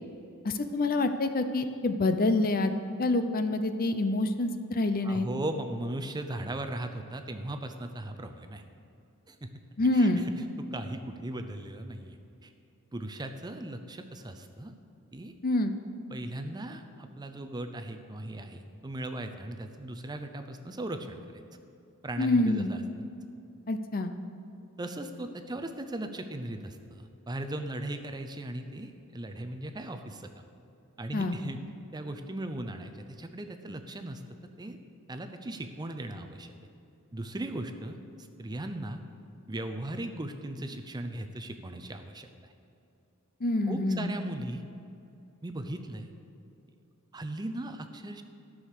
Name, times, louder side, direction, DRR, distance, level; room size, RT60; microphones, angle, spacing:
voice 1, 0.4-2.7 3.0-5.3 9.8-10.2 15.4-15.8 22.2-22.7 23.7-24.1 31.1-31.4 43.4-44.1, left 2 dB, 40° left, 8 dB, 0.6 m, -26 dB
voice 2, 5.0-8.6 9.3-9.5 9.9-10.2 10.7-12.2 12.4-12.5 12.9-14.7 15.1-15.3 16.1-21.2 22.0-22.8 24.8-30.3 31.0-31.6 31.9-32.9 33.2-34.2 34.6-34.8 35.1-36.5 37.1-38.0 38.4-39.0 39.5-42.5 43.7-44.6 45.4-46.1 47.1-48.2, right 1 dB, 20° right, 6 dB, 0.6 m, -37 dB
13.5 x 6.4 x 6.6 m, 2.7 s
head